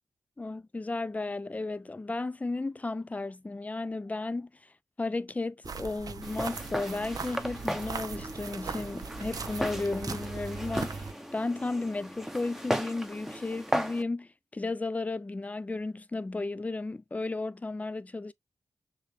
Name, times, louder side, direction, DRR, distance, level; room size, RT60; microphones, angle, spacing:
voice 1, 0.4-4.7 5.0-18.3, left 3 dB, 20° left, 0.4 m, -34 dB
sound 1, 5.6-11.1, right 5 dB, 70° right, 0.6 m, -39 dB
Walk footsteps, 6.2-14.0, equal, 5° right, 0.8 m, -36 dB
6.6 x 2.3 x 3.0 m
wide cardioid pair, 75°, 7 cm